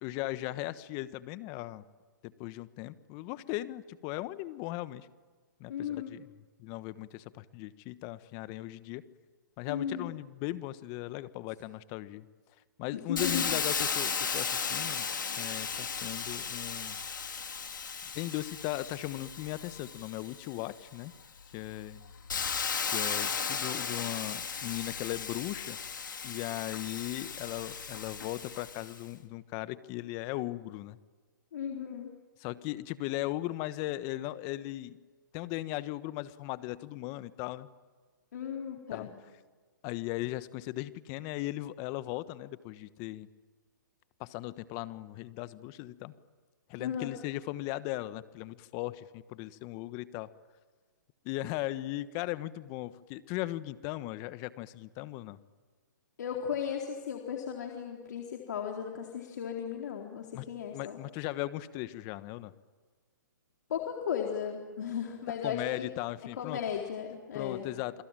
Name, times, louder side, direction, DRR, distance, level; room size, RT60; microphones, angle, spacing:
voice 1, 0.0-1.9 2.2-5.1 5.6-6.3 6.6-9.0 9.6-12.3 12.8-15.1 15.4-17.0 18.1-21.1 21.5-22.0 22.9-25.8 26.2-31.0 32.4-35.0 35.3-37.7 38.9-39.1 39.8-43.3 44.2-46.1 46.7-50.3 51.2-55.4 60.3-60.4 60.7-62.5 65.4-66.6 67.3-68.0, left 17 dB, 30° left, 15 dB, 1.3 m, -38 dB
voice 2, 5.7-6.2 9.7-10.1 12.9-13.5 31.5-32.1 38.3-39.1 46.8-47.2 56.2-61.0 63.7-65.9 66.4-67.7, left 8 dB, 60° left, 1 dB, 4.1 m, -36 dB
Hiss, 13.2-20.7 21.2-29.0, left 6 dB, 80° left, 3.7 m, -35 dB
28.5 x 22.0 x 9.1 m, 1.4 s
hypercardioid pair, 140°, 10 cm